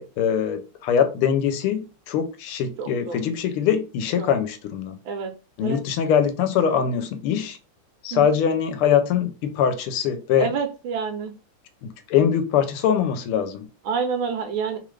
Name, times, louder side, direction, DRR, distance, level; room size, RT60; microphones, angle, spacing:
voice 1, 0.0-5.0 5.6-7.6 8.0-10.5 11.8-13.7, left 8 dB, 85° left, 8 dB, 1.5 m, -23 dB
voice 2, 2.8-3.2 4.2-4.3 5.0-5.3 5.6-5.8 8.1-8.3 10.4-11.3 13.8-14.8, right 6 dB, 75° right, 6 dB, 1.3 m, -28 dB
3.5 x 2.5 x 3.1 m, 0.31 s
omnidirectional pair, 2.4 m